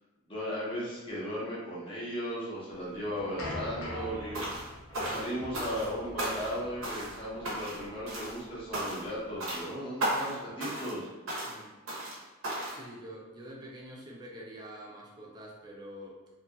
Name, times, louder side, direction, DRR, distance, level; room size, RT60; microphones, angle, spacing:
voice 1, 0.3-4.5 4.9-11.1, equal, 25° left, -7 dB, 0.8 m, -36 dB
sound 1, 2.7-9.6, left 1 dB, 80° left, 0.7 m, -43 dB
sound 2, 4.3-4.7 4.9-5.9 6.2-6.6 6.8-7.2 7.5-7.8 8.1-8.4 8.7-9.1 9.4-9.7 10.0-10.3 10.6-11.0 11.3-11.6 11.9-12.2 12.4-12.8, right 1 dB, 70° right, 0.9 m, -34 dB
voice 2, 12.6-16.2, equal, 20° right, -3 dB, 0.4 m, -46 dB
2.8 x 2.7 x 2.3 m, 1.1 s
head